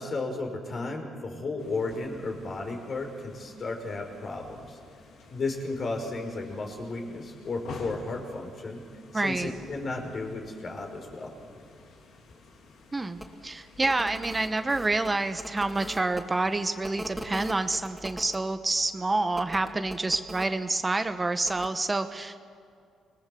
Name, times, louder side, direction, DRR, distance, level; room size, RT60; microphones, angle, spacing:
voice 1, 0.0-4.8 5.3-8.8 9.1-11.3, left 3 dB, 45° left, 2 dB, 5.2 m, -34 dB
sound 1, 1.6-18.0, left 3 dB, 75° left, 3.5 m, -50 dB
voice 2, 9.1-9.5 12.9-22.4, right 2 dB, 20° right, 9 dB, 1.1 m, -28 dB
sound 2, 13.2-13.3 13.8-16.2 16.8-18.4 19.3-20.5 21.4-21.7, equal, ahead, 3.5 m, -40 dB
26.5 x 20.5 x 7.8 m, 2.4 s
cardioid pair, 90°, 0 cm